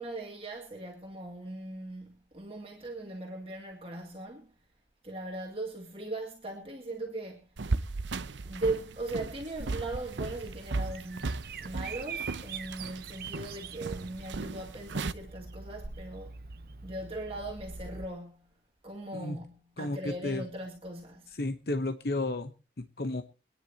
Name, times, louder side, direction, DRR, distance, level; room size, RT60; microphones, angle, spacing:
voice 1, 0.0-4.5 5.0-7.5 8.4-16.3 16.8-21.4, right 2 dB, 30° right, 2.2 m, -39 dB
sound 1, 7.6-15.1, right 3 dB, 90° right, 0.7 m, -36 dB
Bird vocalization bird call bird song, 9.6-18.0, right 5 dB, 55° right, 0.8 m, -44 dB
voice 2, 19.8-20.4 21.4-23.2, left 2 dB, 60° left, 0.9 m, -33 dB
25.5 x 10.0 x 2.9 m
head